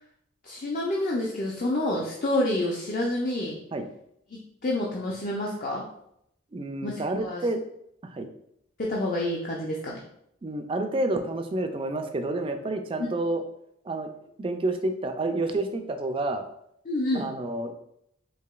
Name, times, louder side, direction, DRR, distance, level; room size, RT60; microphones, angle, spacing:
voice 1, 0.4-3.6 4.3-5.8 6.8-7.4 8.8-10.0 13.0-13.1 16.9-17.3, left 1 dB, 45° left, -2 dB, 0.5 m, -28 dB
voice 2, 6.5-7.6 8.0-8.3 10.4-13.4 13.9-14.1 14.4-16.4 17.1-17.7, right 2 dB, 25° right, 6 dB, 0.3 m, -29 dB
4.7 x 2.7 x 2.3 m, 0.74 s
head